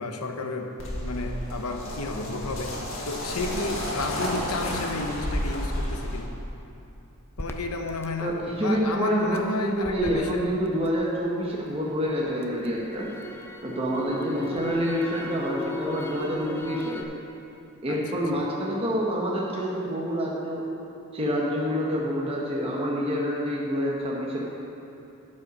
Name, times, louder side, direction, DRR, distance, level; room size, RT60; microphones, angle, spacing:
voice 1, 0.0-2.8 3.0-6.3 7.4-10.5 17.9-18.0, left 2 dB, 85° left, 4 dB, 0.9 m, -32 dB
sound 1, 0.8-6.2, left 1 dB, 65° left, 1.8 m, -31 dB
Crackle, 7.4-11.5 11.9-17.0, equal, 10° left, 0.4 m, -38 dB
voice 2, 8.2-13.1 13.6-17.0 17.8-20.6 21.1-24.4, equal, 25° right, -4 dB, 1.1 m, -27 dB
12.0 x 5.5 x 5.3 m, 2.9 s
head